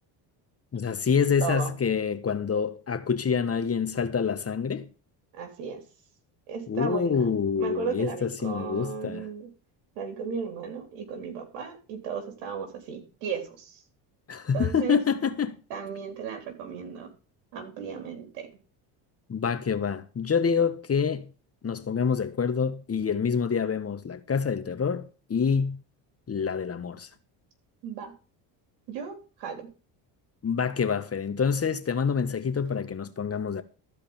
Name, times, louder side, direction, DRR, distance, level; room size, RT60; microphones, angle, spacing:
voice 1, 0.7-4.9 6.7-9.3 14.3-15.6 19.3-21.3 21.6-25.8 26.3-27.1 30.4-33.6, left 6 dB, 30° left, 1.3 m, -27 dB
voice 2, 1.4-1.7 5.3-5.8 6.5-9.5 10.0-13.8 14.5-15.0 15.7-17.1 17.5-18.5 27.8-28.1 28.9-29.7, right 6 dB, 90° right, 3.6 m, -35 dB
14.0 x 5.2 x 7.2 m
supercardioid pair, 85°, 49 cm